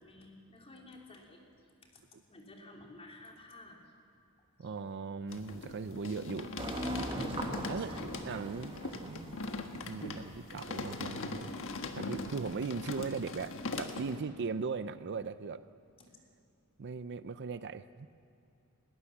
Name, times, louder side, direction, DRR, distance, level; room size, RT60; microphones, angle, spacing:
voice 1, 0.0-1.4 1.9-2.0 2.3-3.8 4.6-4.7 7.8-8.9 16.0-16.1, left 2 dB, 25° left, 0 dB, 3.2 m, -53 dB
voice 2, 4.6-6.5 7.7-9.4 9.9-11.5 11.9-15.6 16.8-18.1, right 4 dB, 50° right, 13 dB, 0.5 m, -39 dB
sound 1, 5.3-14.2, left 3 dB, 60° left, 1.4 m, -41 dB
sound 2, 6.6-12.2, right 1 dB, 25° right, 1.8 m, -41 dB
20.0 x 19.5 x 7.2 m, 2.6 s
head